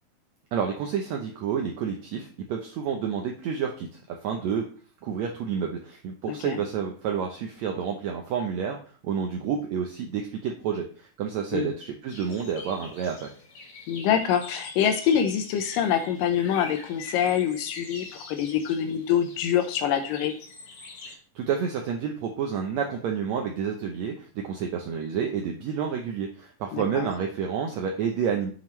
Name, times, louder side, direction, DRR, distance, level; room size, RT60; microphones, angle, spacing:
voice 1, 0.5-4.6 5.0-13.3 21.0-28.5, right 7 dB, 75° right, 2 dB, 1.7 m, -29 dB
voice 2, 6.3-6.6 11.5-11.7 13.9-20.3 26.7-27.1, left 9 dB, 85° left, 7 dB, 2.4 m, -25 dB
sound 1, 12.1-21.1, left 3 dB, 60° left, 1.5 m, -44 dB
7.5 x 7.3 x 3.1 m, 0.42 s
omnidirectional pair, 3.9 m